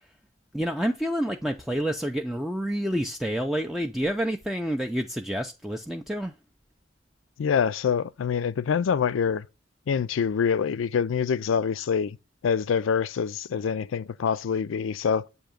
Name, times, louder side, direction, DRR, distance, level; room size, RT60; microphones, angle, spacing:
voice 1, 0.5-6.3, equal, ahead, 0.3 m, -28 dB
voice 2, 7.4-9.4 9.9-12.2 12.4-15.3, left 6 dB, 85° left, 0.4 m, -25 dB
7.8 x 2.7 x 5.0 m
head